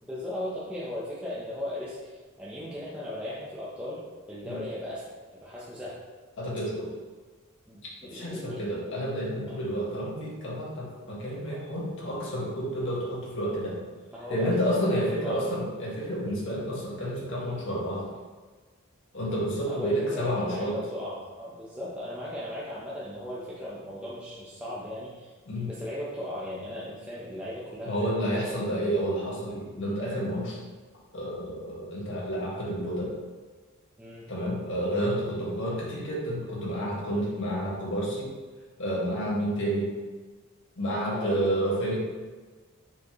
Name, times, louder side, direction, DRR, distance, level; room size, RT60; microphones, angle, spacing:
voice 1, 0.0-4.0 4.3-5.1 5.4-6.0 7.7-8.9 9.5-9.6 14.1-15.4 19.3-25.3 25.6-28.5 34.0-34.3 37.1-37.2 41.1-41.6, left 1 dB, 5° right, -8 dB, 0.9 m, -37 dB
voice 2, 6.4-6.9 8.0-13.8 14.3-18.1 19.1-20.8 25.5-25.7 27.9-30.6 31.1-33.2 34.3-38.3 38.8-39.9 40.8-42.0, equal, 60° left, -5 dB, 2.0 m, -30 dB
7.0 x 5.0 x 3.1 m, 1.4 s
head